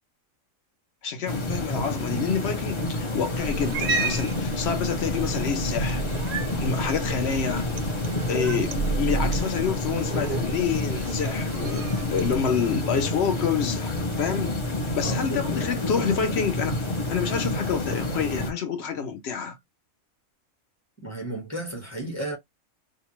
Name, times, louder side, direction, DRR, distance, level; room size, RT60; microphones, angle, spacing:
voice 1, 1.0-7.7 8.3-14.6 14.9-16.8 17.1-19.6, left 7 dB, 60° left, 0.8 m, -28 dB
sound 1, 1.3-18.5, left 2 dB, 35° left, 0.5 m, -29 dB
Cat, 3.4-12.4, right 3 dB, 55° right, 0.6 m, -32 dB
voice 2, 15.0-16.2 21.0-22.4, right 1 dB, 15° left, 1.0 m, -34 dB
2.8 x 2.2 x 3.0 m
omnidirectional pair, 1.5 m